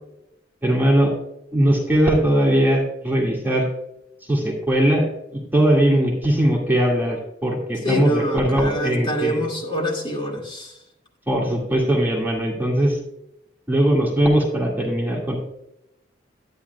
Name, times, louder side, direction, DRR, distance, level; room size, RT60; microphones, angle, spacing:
voice 1, 0.6-1.1 1.5-3.7 4.3-5.1 5.3-9.5 11.3-13.0 13.7-15.4, right 1 dB, 10° right, -2 dB, 2.0 m, -20 dB
voice 2, 7.8-10.7, equal, 30° left, -1 dB, 2.3 m, -26 dB
11.5 x 9.7 x 2.3 m, 0.81 s
head